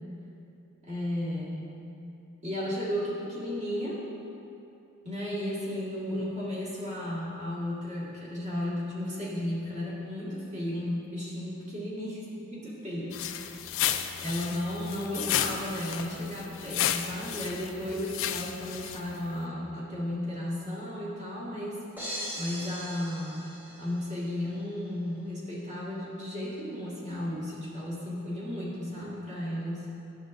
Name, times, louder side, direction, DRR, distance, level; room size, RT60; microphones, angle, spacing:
voice 1, 0.8-1.6 2.4-4.0 5.0-13.6 14.2-21.8 22.4-23.5 23.8-29.9, left 1 dB, 35° right, -7 dB, 1.8 m, -34 dB
sound 1, 13.1-19.3, left 10 dB, 65° left, 0.3 m, -33 dB
sound 2, 22.0-24.2, equal, 10° right, 1.2 m, -39 dB
11.5 x 6.3 x 2.5 m, 2.7 s
head